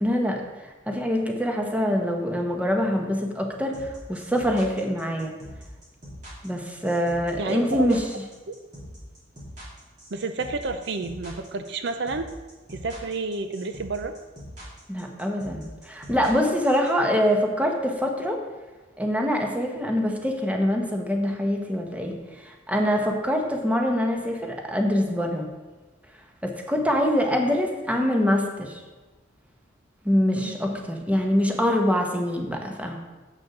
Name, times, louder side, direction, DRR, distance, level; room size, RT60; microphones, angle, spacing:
voice 1, 0.0-5.3 6.4-8.0 14.9-18.4 19.0-25.5 26.4-28.8 30.0-33.0, equal, 10° right, 2 dB, 1.0 m, -24 dB
sound 1, 3.7-16.9, equal, 45° right, 3.0 m, -43 dB
voice 2, 7.4-8.0 8.5-8.6 10.1-12.3 12.7-14.2 30.3-30.6, right 3 dB, 65° right, 8 dB, 0.6 m, -30 dB
7.7 x 6.1 x 6.0 m, 1.2 s
head